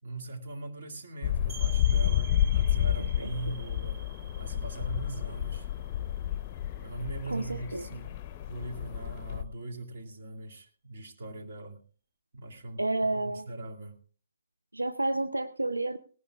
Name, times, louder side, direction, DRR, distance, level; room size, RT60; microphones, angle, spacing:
voice 1, 0.0-4.0 4.3-5.7 6.8-8.1 8.5-11.8 12.3-12.8 13.1-14.0, right 2 dB, 50° right, 4 dB, 2.0 m, -40 dB
sound 1, 1.2-9.4, left 11 dB, 25° left, 0.7 m, -30 dB
sound 2, 1.5-7.0, right 7 dB, 25° right, 1.1 m, -49 dB
voice 2, 7.3-7.9 12.8-13.5 14.7-16.0, right 2 dB, 85° right, 10 dB, 0.6 m, -30 dB
18.5 x 18.0 x 2.3 m, 0.41 s
figure-of-eight pair, 130°, 0 cm